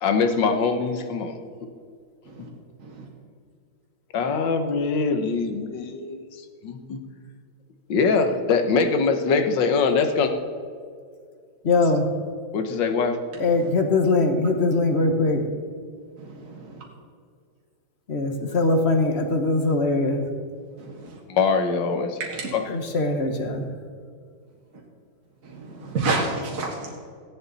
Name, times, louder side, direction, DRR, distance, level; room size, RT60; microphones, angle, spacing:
voice 1, 0.0-1.4 4.1-6.2 6.6-7.0 7.9-10.3 12.5-13.2 21.3-22.2 22.5-22.8, left 5 dB, 65° left, 7 dB, 1.7 m, -23 dB
voice 2, 11.6-12.0 13.4-15.4 18.1-20.2 22.7-23.7, left 3 dB, 40° left, 5 dB, 1.2 m, -21 dB
voice 3, 16.2-16.8 20.8-21.2 22.2-22.5 25.4-27.0, right 3 dB, 45° right, -1 dB, 1.9 m, -30 dB
16.0 x 10.5 x 4.1 m, 2.1 s
omnidirectional pair, 2.2 m